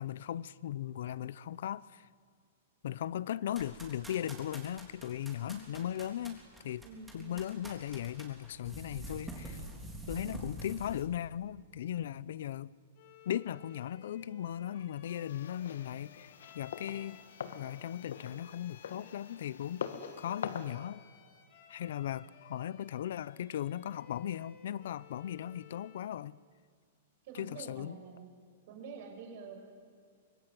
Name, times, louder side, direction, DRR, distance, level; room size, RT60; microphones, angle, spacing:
voice 1, 0.0-2.1 2.8-6.9 7.1-9.6 10.1-12.7 13.2-19.9 20.2-21.0 21.7-26.4 27.3-28.0, left 11 dB, 65° left, 0.7 m, -38 dB
sound 1, 3.5-11.0, right 1 dB, 5° right, 3.6 m, -46 dB
voice 2, 5.4-5.8 6.8-7.5 27.2-28.3 28.7-29.7, right 5 dB, 45° right, 6.1 m, -48 dB
Bowed string instrument, 13.0-26.1, left 7 dB, 45° left, 2.8 m, -58 dB
sound 2, 15.0-20.7, left 7 dB, 85° left, 2.0 m, -44 dB
24.5 x 23.5 x 9.4 m
supercardioid pair, 165°, 0 cm